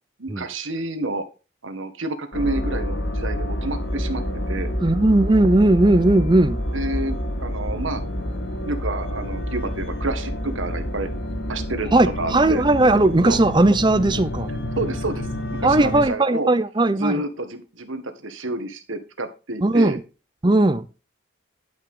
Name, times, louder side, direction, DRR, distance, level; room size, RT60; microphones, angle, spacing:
voice 1, 0.2-1.3 1.6-4.2 4.5-4.7 6.7-8.0 8.6-11.1 11.5-11.9 12.2-12.6 13.2-13.4 14.8-15.3 15.6-16.5 17.0-20.0, right 2 dB, 80° right, 1.7 m, -29 dB
sound 1, 2.3-16.1, equal, 55° left, 1.7 m, -28 dB
voice 2, 4.8-6.6 11.9-14.5 15.6-17.2 19.6-20.0 20.4-20.9, right 2 dB, 20° right, 0.6 m, -17 dB
11.5 x 5.9 x 3.8 m
head